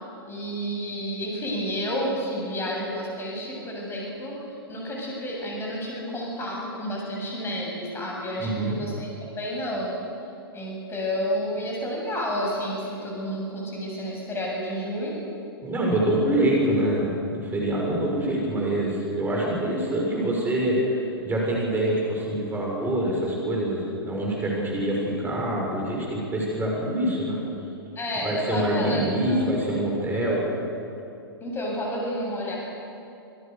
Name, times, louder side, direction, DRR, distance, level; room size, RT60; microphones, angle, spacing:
voice 1, 0.3-4.4 4.7-9.1 9.4-10.0 10.5-15.3 28.0-29.5 31.4-32.6, equal, 20° left, -2 dB, 7.8 m, -30 dB
voice 2, 8.4-8.8 15.6-20.8 21.2-27.4 28.2-30.5, right 1 dB, 15° right, -2 dB, 6.7 m, -25 dB
27.5 x 17.0 x 6.9 m, 2.7 s
figure-of-eight pair, 110°, 13 cm